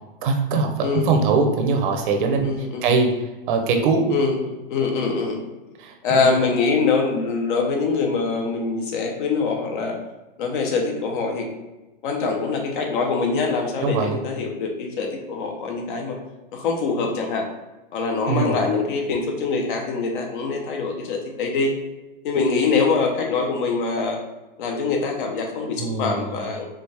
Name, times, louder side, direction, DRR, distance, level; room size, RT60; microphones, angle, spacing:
voice 1, 0.2-4.2 5.8-6.5 13.8-14.2 18.3-18.6 25.8-26.4, right 4 dB, 60° right, 4 dB, 0.8 m, -22 dB
voice 2, 2.4-2.8 4.1-5.4 6.0-9.9 10.4-11.5 12.0-16.2 16.5-17.5 17.9-21.7 22.2-24.2 24.6-26.7, left 4 dB, 55° left, 2 dB, 1.0 m, -24 dB
4.9 x 2.5 x 3.4 m, 1.1 s
hypercardioid pair, 140°, 29 cm